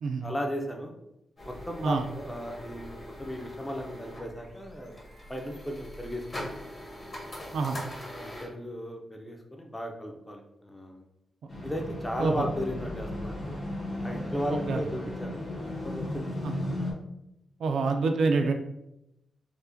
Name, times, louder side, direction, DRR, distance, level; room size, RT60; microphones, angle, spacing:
voice 1, 0.2-0.9 1.5-5.0 5.3-6.4 8.1-11.1 11.6-13.5 14.0-16.5, equal, 10° left, 2 dB, 0.5 m, -36 dB
sound 1, 1.4-8.5, left 1 dB, 25° left, 0.9 m, -42 dB
sound 2, 11.5-16.9, left 1 dB, 50° left, 1.2 m, -35 dB
voice 2, 17.6-18.5, right 4 dB, 90° right, 5 dB, 0.4 m, -26 dB
4.6 x 2.1 x 2.6 m, 0.84 s
wide cardioid pair, 145°, 0 cm